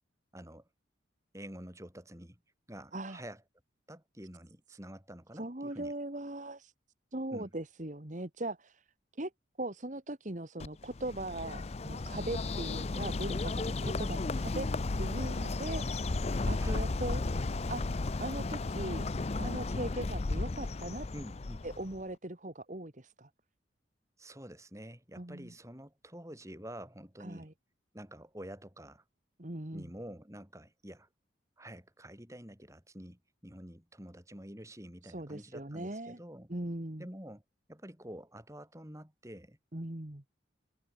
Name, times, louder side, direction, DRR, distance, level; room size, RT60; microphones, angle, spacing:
voice 1, 0.3-0.7 1.3-2.4 2.7-3.4 3.9-5.9 7.3-7.5 16.6-16.9 21.1-21.7 24.2-27.5 27.9-29.0 29.7-31.1 31.6-36.5 37.0-37.4 37.7-39.6, equal, 15° right, 4.3 m, -48 dB
voice 2, 5.3-6.7 7.1-8.8 9.2-9.3 9.6-14.7 15.0-16.0 16.5-17.2 17.7-17.8 18.2-19.0 19.3-21.1 21.6-23.3 25.2-25.5 27.2-27.5 29.4-29.9 35.0-36.2 36.5-37.1 39.7-40.2, right 1 dB, 40° right, 1.6 m, -39 dB
Bird, 10.6-22.0, left 3 dB, 35° left, 0.5 m, -34 dB
head